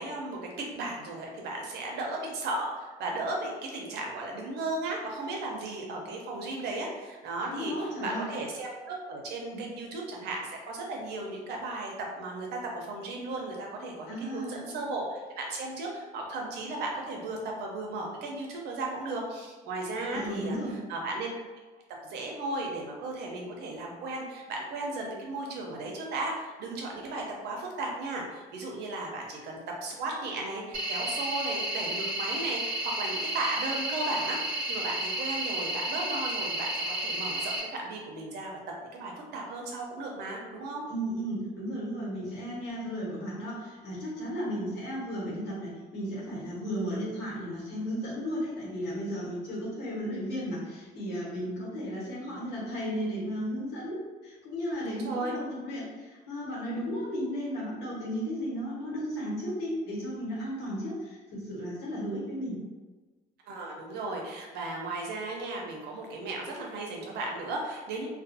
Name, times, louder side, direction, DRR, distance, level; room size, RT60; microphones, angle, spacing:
voice 1, 0.0-20.6 20.9-21.3 22.0-40.8 54.9-55.4 63.5-68.1, right 2 dB, 75° right, 0 dB, 0.6 m, -35 dB
voice 2, 7.4-8.2 9.5-9.6 14.1-14.6 20.1-20.8 40.9-62.6, equal, 85° left, -6 dB, 1.2 m, -34 dB
sound 1, 30.7-37.6, right 1 dB, 55° right, 0.9 m, -32 dB
2.4 x 2.3 x 2.6 m, 1.3 s
cardioid pair, 110°, 17 cm